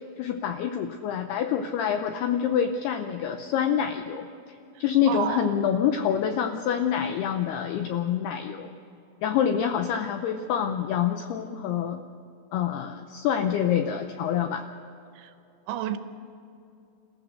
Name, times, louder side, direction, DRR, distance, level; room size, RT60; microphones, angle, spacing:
voice 1, 0.2-4.3 4.8-8.7 9.2-12.0 12.5-14.6, left 8 dB, 85° left, 7 dB, 2.3 m, -26 dB
voice 2, 4.8-5.5 15.2-15.3 15.7-16.0, right 12 dB, 80° right, 9 dB, 3.1 m, -31 dB
28.0 x 15.0 x 6.5 m, 2.7 s
omnidirectional pair, 5.5 m